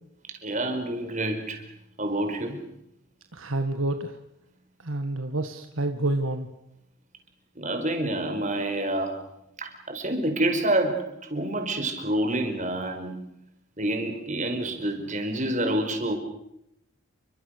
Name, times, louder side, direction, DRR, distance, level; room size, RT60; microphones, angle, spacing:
voice 1, 0.3-1.6 2.0-2.6 7.6-9.2 9.6-11.0 11.3-13.2 13.8-16.1, right 1 dB, 35° right, 5 dB, 5.1 m, -27 dB
voice 2, 3.3-4.1 4.8-6.5, right 2 dB, 65° right, 6 dB, 1.7 m, -28 dB
29.5 x 24.5 x 6.7 m, 0.80 s
head